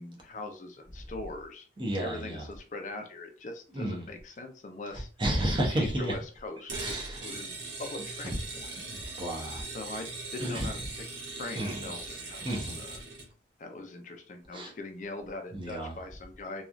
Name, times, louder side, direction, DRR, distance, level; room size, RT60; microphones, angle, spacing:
voice 1, 0.0-1.7 2.0-5.1 5.5-7.5 7.8-8.7 9.7-11.1 11.3-13.0 13.6-16.6, left 2 dB, 40° left, 0.4 m, -41 dB
voice 2, 1.8-2.4 3.7-4.0 5.2-6.1 6.7-7.2 8.9-9.6 10.4-10.7 11.5-11.8 12.4-12.8 14.5-14.7 15.5-15.9, right 1 dB, 25° right, 0.7 m, -31 dB
sound 1, 6.7-13.3, right 3 dB, 85° right, 1.0 m, -40 dB
3.0 x 2.3 x 2.5 m
head